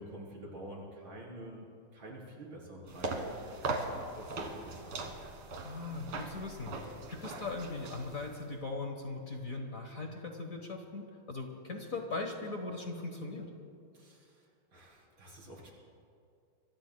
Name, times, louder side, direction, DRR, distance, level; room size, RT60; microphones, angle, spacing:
voice 1, 0.0-5.1 13.9-14.5 14.7-15.7, right 1 dB, 65° right, -3 dB, 4.5 m, -48 dB
sound 1, 2.9-8.5, right 3 dB, 80° right, 2.5 m, -40 dB
voice 2, 5.6-13.5, left 3 dB, 45° left, 2 dB, 1.5 m, -39 dB
25.5 x 24.0 x 2.3 m, 2.4 s
omnidirectional pair, 2.4 m